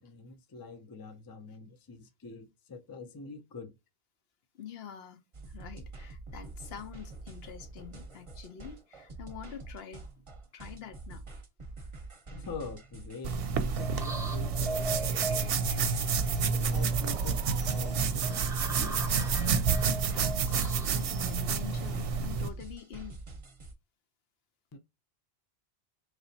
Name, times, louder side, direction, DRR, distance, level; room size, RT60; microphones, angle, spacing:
voice 1, 0.0-3.7 12.3-15.5 16.5-19.2 24.7-24.8, left 4 dB, 30° left, 0.5 m, -45 dB
voice 2, 4.5-5.2 5.5-10.0 10.5-11.2 16.1-16.5 20.1-23.2, left 8 dB, 75° left, 1.0 m, -46 dB
sound 1, 5.3-23.7, right 3 dB, 30° right, 0.9 m, -46 dB
sound 2, 13.2-22.5, right 5 dB, 70° right, 0.8 m, -29 dB
sound 3, 13.8-22.2, right 2 dB, 5° right, 0.8 m, -41 dB
4.0 x 3.3 x 2.7 m
omnidirectional pair, 1.0 m